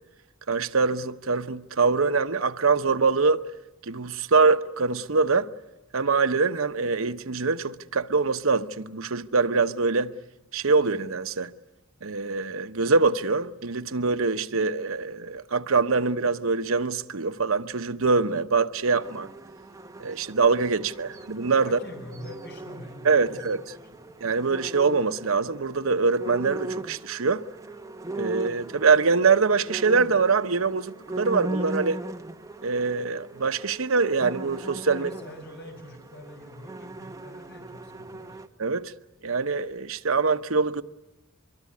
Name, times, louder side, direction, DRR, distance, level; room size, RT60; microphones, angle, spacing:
voice 1, 0.5-3.4 3.9-5.5 5.9-10.1 10.5-11.5 12.0-19.3 20.0-21.8 23.0-23.6 24.2-27.4 28.2-32.0 32.6-35.1 38.6-38.9 39.2-40.8, right 4 dB, 75° right, 1.0 m, -24 dB
sound 1, 18.9-38.5, right 2 dB, 15° right, 1.1 m, -39 dB
voice 2, 21.6-24.1 34.9-38.4, equal, 55° left, 6.9 m, -45 dB
24.0 x 23.5 x 9.6 m
head